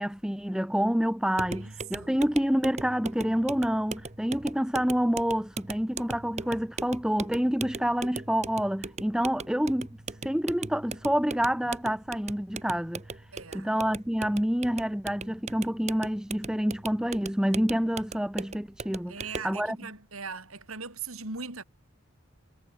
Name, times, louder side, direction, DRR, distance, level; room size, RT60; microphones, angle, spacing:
voice 1, 0.0-9.9 10.2-13.0 13.5-19.2 19.4-19.8, equal, 5° right, 0.6 m, -27 dB
sound 1, 1.3-19.6, right 4 dB, 30° right, 1.1 m, -40 dB
voice 2, 1.3-2.2 13.3-13.7 19.1-21.6, right 4 dB, 85° right, 6.0 m, -40 dB
head